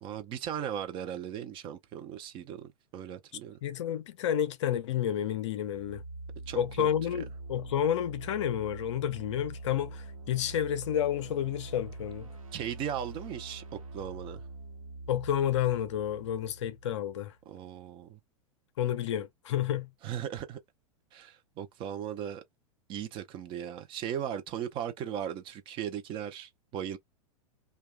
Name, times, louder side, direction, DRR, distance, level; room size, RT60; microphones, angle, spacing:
voice 1, 0.0-3.6 6.5-6.9 12.5-14.4 17.5-18.2 20.0-20.6 21.1-22.4 22.9-27.0, right 9 dB, 30° right, 0.6 m, -37 dB
voice 2, 3.6-6.0 6.5-12.3 15.1-17.3 18.8-19.9, left 10 dB, 55° left, 0.6 m, -30 dB
sound 1, 5.6-17.3, right 2 dB, 70° right, 1.0 m, -44 dB
2.9 x 2.3 x 3.3 m
figure-of-eight pair, 95°, 18 cm